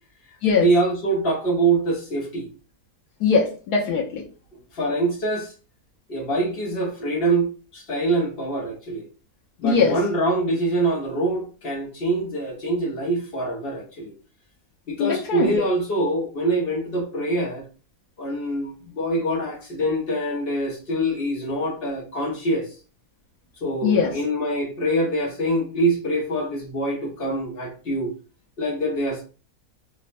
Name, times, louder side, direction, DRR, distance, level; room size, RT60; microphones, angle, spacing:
voice 1, 0.5-2.5 4.7-5.5 6.1-9.0 9.6-14.1 14.9-17.6 18.2-22.7 23.6-28.1 28.6-29.2, right 2 dB, 50° left, 0.8 m, -24 dB
voice 2, 3.2-4.2 9.6-10.0 15.0-15.6 23.8-24.1, left 5 dB, 85° left, 1.2 m, -21 dB
3.1 x 2.1 x 2.5 m
omnidirectional pair, 1.7 m